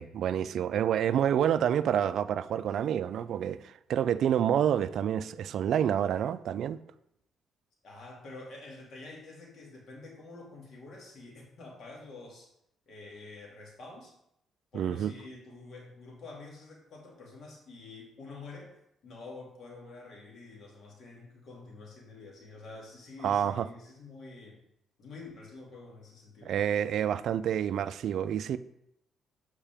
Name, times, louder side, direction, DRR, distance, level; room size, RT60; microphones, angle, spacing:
voice 1, 0.0-6.8 14.7-15.1 23.2-23.7 26.4-28.6, right 9 dB, 70° right, 0.3 m, -28 dB
voice 2, 7.8-12.5 12.9-14.1 14.7-18.7 19.0-24.6 25.0-26.5, left 3 dB, 60° left, 2.2 m, -47 dB
7.2 x 4.8 x 3.4 m
cardioid pair, 90°, 0 cm